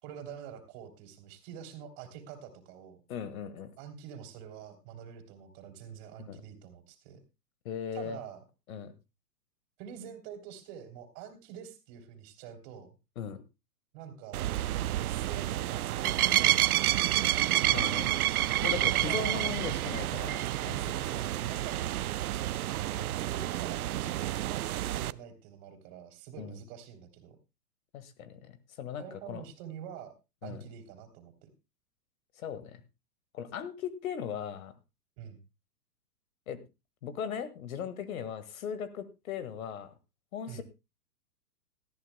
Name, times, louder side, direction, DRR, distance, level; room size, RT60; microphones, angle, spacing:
voice 1, 0.0-3.0 3.8-7.2 7.9-8.4 9.8-12.9 13.9-14.4 15.1-17.1 18.9-19.5 20.8-22.1 23.2-27.3 29.0-30.1 30.4-31.5 35.2-35.4 40.5-40.6, right 9 dB, 40° right, 7 dB, 3.3 m, -46 dB
voice 2, 3.1-3.7 6.2-6.4 7.6-8.2 8.7-8.9 13.2-13.4 17.7-18.2 18.6-20.8 26.4-26.6 27.9-28.4 28.8-29.4 30.4-30.6 32.4-32.8 33.3-34.7 36.5-36.6 37.0-39.9 40.3-40.6, left 8 dB, 60° left, 12 dB, 1.8 m, -38 dB
sound 1, 14.3-25.1, right 14 dB, 65° right, 0.6 m, -29 dB
19.0 x 13.5 x 2.2 m, 0.26 s
hypercardioid pair, 125°, 48 cm